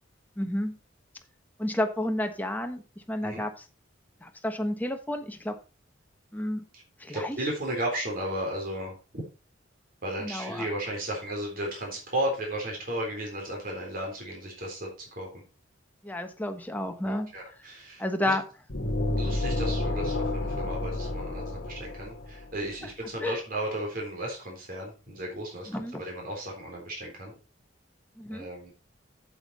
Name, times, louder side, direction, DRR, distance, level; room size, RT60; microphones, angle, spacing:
voice 1, 0.4-0.7 1.6-2.8 3.1-3.5 4.2-5.5 6.3-6.6 7.0-7.4 10.2-10.7 16.0-17.3 18.0-18.4 23.2-23.4 25.7-26.0 28.2-28.5, left 1 dB, 10° left, 5 dB, 1.2 m, -30 dB
voice 2, 7.1-9.2 10.0-15.3 16.8-18.3 19.2-27.3 28.3-28.7, right 1 dB, 45° right, 0 dB, 3.7 m, -34 dB
sound 1, 18.7-22.5, left 2 dB, 60° left, 1.7 m, -30 dB
8.4 x 8.0 x 4.2 m, 0.33 s
head